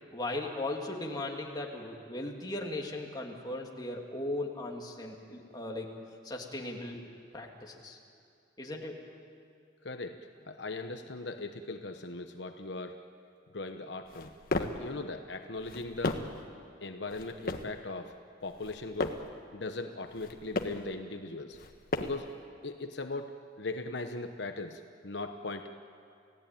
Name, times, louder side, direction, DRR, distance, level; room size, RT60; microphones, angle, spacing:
voice 1, 0.1-5.9 6.2-7.0 7.3-8.0 8.6-9.0, left 2 dB, 20° left, 0 dB, 2.6 m, -37 dB
voice 2, 9.8-10.2 10.5-13.0 13.5-16.2 16.8-18.2 18.4-19.2 19.5-21.6 22.0-22.3 22.6-23.3 23.6-25.7, left 3 dB, 70° left, 6 dB, 1.1 m, -39 dB
sound 1, 14.1-14.9 15.6-16.4 17.1-17.8 18.5-19.3 20.1-20.9 21.5-22.3, left 2 dB, 50° left, 1.4 m, -35 dB
29.5 x 16.5 x 9.2 m, 2.4 s
head